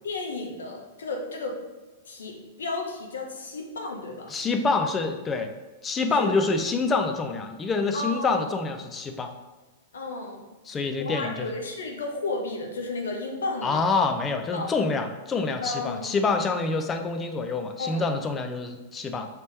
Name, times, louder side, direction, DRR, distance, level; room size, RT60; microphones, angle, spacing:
voice 1, 0.0-1.6 2.1-4.3 6.2-6.4 7.9-8.4 9.9-10.4 11.0-13.9 14.5-14.7 15.6-16.1 17.8-18.1, left 3 dB, 90° left, 1 dB, 0.8 m, -33 dB
voice 2, 4.3-5.5 5.8-9.3 10.7-11.6 13.6-19.3, left 4 dB, 20° left, 5 dB, 0.4 m, -26 dB
3.3 x 2.9 x 4.5 m, 1.2 s
hypercardioid pair, 125°, 0 cm